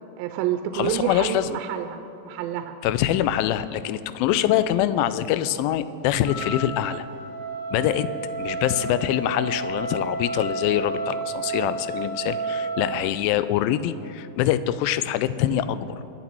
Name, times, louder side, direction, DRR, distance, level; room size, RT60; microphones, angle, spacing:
voice 1, 0.2-2.8, right 10 dB, 85° right, 7 dB, 2.4 m, -28 dB
voice 2, 0.7-1.6 2.8-7.1 7.7-8.1 8.4-16.0, left 12 dB, 85° left, 13 dB, 2.3 m, -24 dB
Wind instrument woodwind instrument, 6.2-13.0, right 3 dB, 20° left, 3.6 m, -31 dB
22.0 x 8.3 x 4.5 m, 2.9 s
omnidirectional pair, 4.1 m